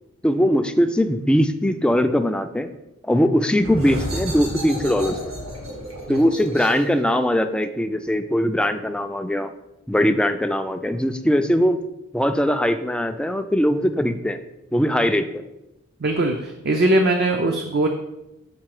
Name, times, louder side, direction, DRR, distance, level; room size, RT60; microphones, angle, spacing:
voice 1, 0.2-2.7 3.0-5.3 6.1-9.5 9.9-11.8 12.1-14.4 14.7-15.4, equal, 5° left, 8 dB, 0.3 m, -21 dB
sound 1, 3.6-9.0, equal, 80° right, 2.1 m, -33 dB
voice 2, 16.0-17.9, right 1 dB, 50° right, 4 dB, 0.5 m, -20 dB
7.6 x 3.7 x 4.8 m, 0.93 s
head